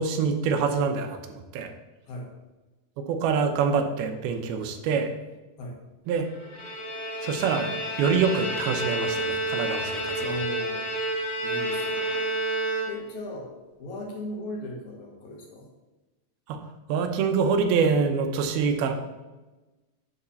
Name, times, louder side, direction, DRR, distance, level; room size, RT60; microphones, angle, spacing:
voice 1, 0.0-1.7 3.0-5.1 6.1-6.3 7.2-10.4 16.5-16.6 16.9-18.9, right 5 dB, 85° right, 5 dB, 2.8 m, -25 dB
Bowed string instrument, 6.3-13.3, right 1 dB, 20° left, 1.6 m, -30 dB
voice 2, 10.2-11.0 11.4-12.1 12.9-13.5 13.8-15.7, left 1 dB, 60° left, 0 dB, 2.4 m, -37 dB
9.3 x 4.1 x 6.9 m, 1.1 s
omnidirectional pair, 4.2 m